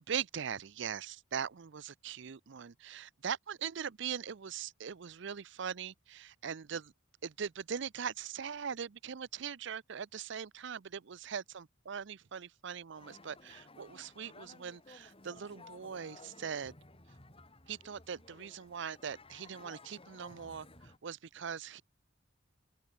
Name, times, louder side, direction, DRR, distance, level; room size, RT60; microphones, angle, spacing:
voice 1, 0.1-6.9 7.2-16.7 17.7-21.8, right 7 dB, 65° right, 0.6 m, -41 dB
sound 1, 12.9-21.0, left 2 dB, 30° left, 4.4 m, -56 dB
head